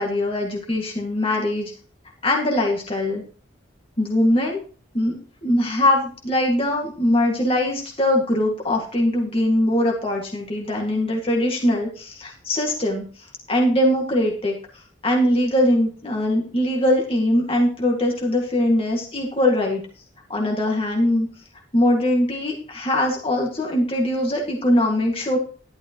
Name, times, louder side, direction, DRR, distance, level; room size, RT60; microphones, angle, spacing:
voice 1, 0.0-1.7 2.2-3.2 4.0-4.6 4.9-5.1 5.4-14.5 15.0-19.8 20.3-21.3 21.7-25.4, left 1 dB, 30° left, -1 dB, 1.9 m, -21 dB
12.0 x 11.5 x 3.0 m, 0.39 s
head